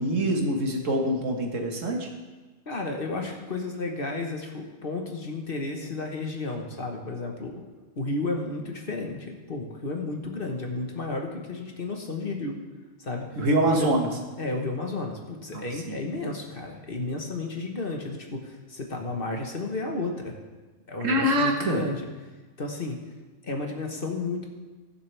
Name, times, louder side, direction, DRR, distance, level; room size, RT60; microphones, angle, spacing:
voice 1, 0.0-2.1 13.4-14.1 15.5-16.0 21.0-21.8, right 1 dB, 80° right, 2 dB, 1.9 m, -25 dB
voice 2, 2.7-7.6 7.9-12.6 13.0-13.3 13.7-13.9 14.4-20.3 20.9-22.0 22.6-23.0 23.4-24.5, left 3 dB, 45° left, 2 dB, 1.5 m, -32 dB
21.5 x 7.2 x 3.4 m, 1.2 s
omnidirectional pair, 1.3 m